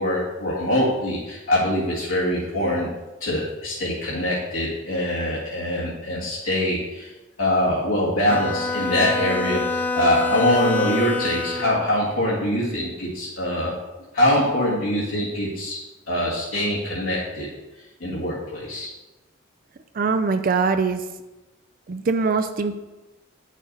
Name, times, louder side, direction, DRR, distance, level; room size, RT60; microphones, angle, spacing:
voice 1, 0.0-2.9 3.2-7.1 7.4-13.7 14.1-15.8 16.1-17.5 18.0-18.9, left 1 dB, 90° left, -8 dB, 1.9 m, -23 dB
Bowed string instrument, 8.3-11.9, left 3 dB, 10° left, 0.5 m, -26 dB
voice 2, 20.0-21.0 21.9-22.8, right 4 dB, 45° right, 9 dB, 0.4 m, -22 dB
9.1 x 6.3 x 4.0 m, 1.1 s
head